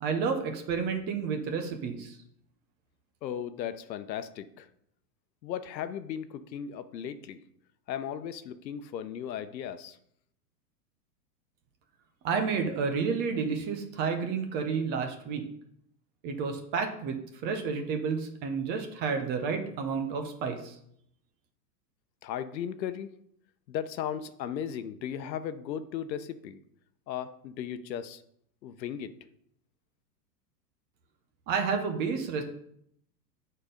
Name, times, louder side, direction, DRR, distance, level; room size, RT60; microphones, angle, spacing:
voice 1, 0.0-2.2 12.2-15.4 16.2-17.2 17.4-20.8 31.5-32.4, right 5 dB, 20° right, 5 dB, 0.6 m, -30 dB
voice 2, 3.2-4.7 5.4-7.4 7.9-10.0 22.2-23.1 23.7-26.6 27.1-28.2 28.6-29.1, left 9 dB, 85° left, 11 dB, 0.9 m, -36 dB
8.4 x 4.4 x 5.1 m, 0.71 s
supercardioid pair, 155°, 50 cm